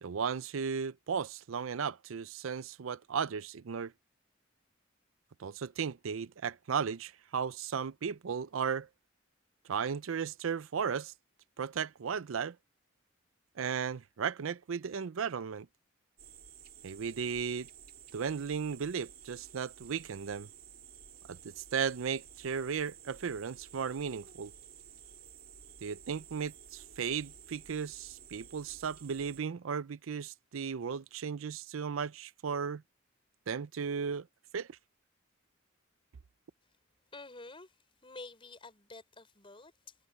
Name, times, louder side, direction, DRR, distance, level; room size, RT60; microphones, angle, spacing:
voice 1, 0.0-3.9 5.4-8.9 9.7-11.1 11.6-12.6 13.6-15.7 16.8-17.7 18.1-20.5 21.3-24.5 25.8-32.8 33.5-34.3 34.5-34.7, right 6 dB, 80° right, 0.5 m, -35 dB
sound 1, 16.2-29.4, right 8 dB, 45° right, 2.7 m, -53 dB
voice 2, 37.1-37.8 38.0-40.0, left 2 dB, 25° left, 4.8 m, -49 dB
head